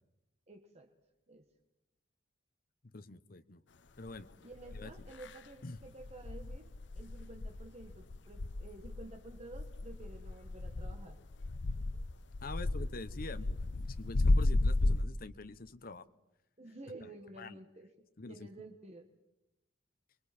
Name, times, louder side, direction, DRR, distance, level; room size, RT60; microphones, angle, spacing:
voice 1, 0.5-0.9 1.3-1.4 4.4-11.2 16.6-17.9 18.3-19.1, right 2 dB, 35° right, 4 dB, 1.5 m, -51 dB
voice 2, 2.8-3.6 4.0-4.3 4.7-4.9 5.6-5.8 12.4-16.0 17.0-17.1 17.4-17.6 18.2-18.5, left 2 dB, 55° left, 11 dB, 1.0 m, -45 dB
sound 1, 4.1-4.2 4.7-5.3 5.8-15.0, left 2 dB, 75° left, 0.8 m, -33 dB
28.5 x 22.5 x 4.4 m, 0.93 s
head